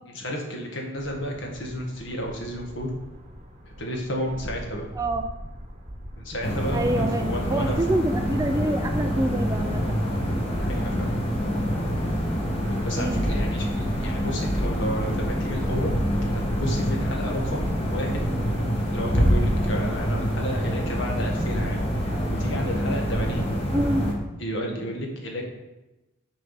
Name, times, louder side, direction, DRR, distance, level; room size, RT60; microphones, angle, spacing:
voice 1, 0.1-2.9 3.8-4.8 6.2-7.7 10.6-11.1 12.8-15.9 16.3-18.2 18.9-21.8 22.4-23.5 24.4-25.4, equal, 60° left, 0 dB, 1.6 m, -32 dB
sound 1, 1.0-19.1, equal, 30° right, 1.0 m, -39 dB
voice 2, 5.0-5.3 6.7-10.0 13.0-13.2 23.7-24.1, right 1 dB, 15° right, 7 dB, 0.3 m, -26 dB
sound 2, 6.4-24.1, equal, 30° left, 1.3 m, -26 dB
7.1 x 4.6 x 5.6 m, 1.0 s
head